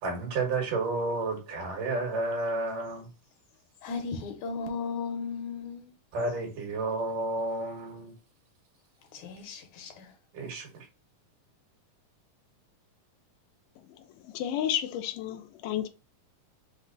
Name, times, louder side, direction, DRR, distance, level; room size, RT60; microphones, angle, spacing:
voice 1, 0.0-3.1 6.1-8.1 10.3-10.7, right 3 dB, 75° right, 2.9 m, -31 dB
voice 2, 3.8-5.9 9.1-10.1, left 5 dB, 75° left, 2.2 m, -36 dB
voice 3, 14.3-15.9, left 10 dB, 90° left, 2.2 m, -31 dB
5.9 x 2.1 x 3.8 m
omnidirectional pair, 3.8 m